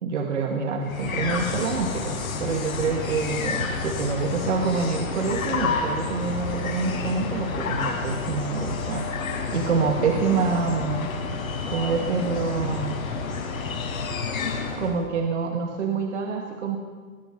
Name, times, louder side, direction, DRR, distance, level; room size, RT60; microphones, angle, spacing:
voice 1, 0.0-11.1 11.7-13.0 14.8-16.8, right 5 dB, 55° right, 2 dB, 2.4 m, -27 dB
sound 1, 0.8-15.1, left 4 dB, 90° left, 7.3 m, -30 dB
23.0 x 21.5 x 6.1 m, 1.5 s
hypercardioid pair, 180°, 41 cm